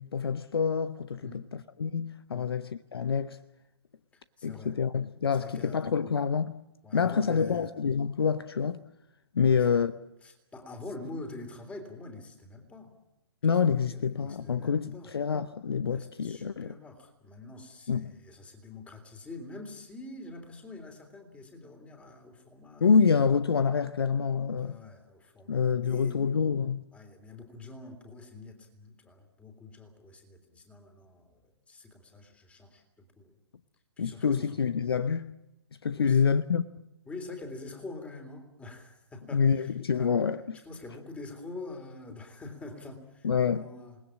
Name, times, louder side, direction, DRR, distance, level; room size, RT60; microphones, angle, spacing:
voice 1, 0.0-3.4 4.4-6.6 6.9-8.8 9.3-9.9 13.4-16.8 17.9-18.2 22.8-24.8 25.5-26.9 34.0-35.4 35.8-36.6 39.3-40.4 43.2-43.7, left 6 dB, 60° left, 0.9 m, -27 dB
voice 2, 4.1-4.8 5.4-6.1 6.8-7.7 9.4-9.9 10.2-12.9 13.7-15.1 15.8-22.9 24.5-26.2 26.9-33.3 34.0-34.6 36.0-36.3 37.0-40.2 40.6-44.0, left 2 dB, 10° left, 3.4 m, -45 dB
28.0 x 19.5 x 7.4 m
figure-of-eight pair, 125°, 14 cm